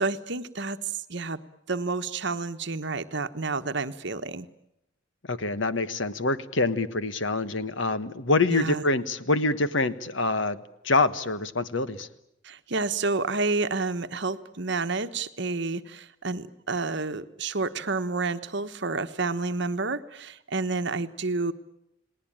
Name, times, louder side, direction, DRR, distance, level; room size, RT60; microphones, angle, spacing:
voice 1, 0.0-1.4 1.7-4.5 8.5-8.8 12.4-21.5, right 3 dB, 60° right, 10 dB, 1.2 m, -29 dB
voice 2, 5.3-10.6 10.8-12.1, left 3 dB, 70° left, 12 dB, 1.4 m, -25 dB
30.0 x 19.0 x 8.9 m, 0.84 s
head